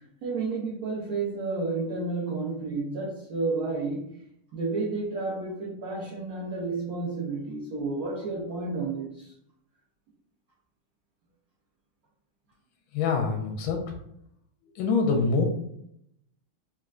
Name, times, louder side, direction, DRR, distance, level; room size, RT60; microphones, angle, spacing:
voice 1, 0.2-4.1 4.5-9.3, right 3 dB, 80° right, -7 dB, 0.7 m, -31 dB
voice 2, 12.9-13.8 14.7-15.4, left 4 dB, 75° left, 2 dB, 1.1 m, -25 dB
4.2 x 2.1 x 2.4 m, 0.74 s
omnidirectional pair, 2.4 m